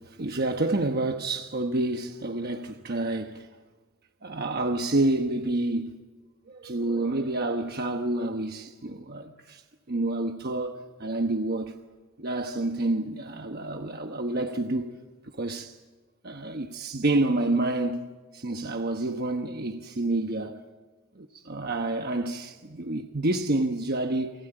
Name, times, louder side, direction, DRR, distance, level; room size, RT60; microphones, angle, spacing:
voice 1, 0.2-3.5 4.2-6.0 6.5-9.6 9.9-10.7 11.0-11.7 12.2-14.9 15.4-15.7 16.2-20.6 21.2-24.3, right 2 dB, 50° right, 1.1 m, -28 dB
29.5 x 21.5 x 9.0 m
head